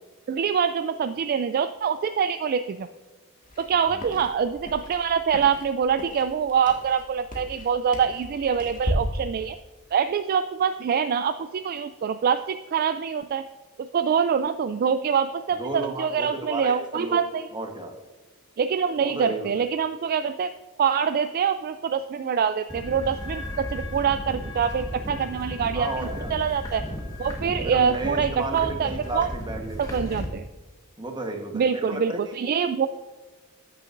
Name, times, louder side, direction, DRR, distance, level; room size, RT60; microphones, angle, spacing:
voice 1, 0.3-2.9 3.6-9.6 9.9-13.4 13.8-17.5 18.6-20.5 20.8-26.8 27.2-29.3 29.8-30.4 31.5-32.9, right 7 dB, 45° right, 10 dB, 0.3 m, -25 dB
sound 1, 3.4-8.9, equal, 40° left, 1.8 m, -37 dB
voice 2, 3.7-4.1 15.6-17.2 17.5-17.9 19.0-19.5 25.7-26.3 27.6-30.1 31.0-32.3, right 2 dB, 20° right, 4 dB, 1.2 m, -33 dB
sound 2, 22.7-30.3, equal, 15° left, 1.4 m, -34 dB
14.0 x 6.8 x 2.6 m, 1.3 s
head